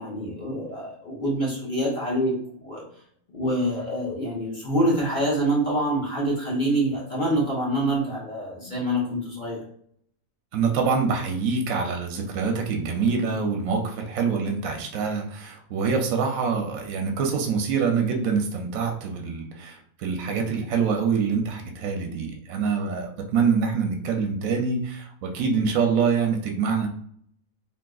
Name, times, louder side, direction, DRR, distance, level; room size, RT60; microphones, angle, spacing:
voice 1, 0.0-2.3 2.6-2.8 3.3-9.6, right 1 dB, 40° left, -4 dB, 0.8 m, -26 dB
voice 2, 10.5-26.9, right 5 dB, 80° right, 3 dB, 1.0 m, -25 dB
3.5 x 2.7 x 2.3 m, 0.64 s
omnidirectional pair, 1.4 m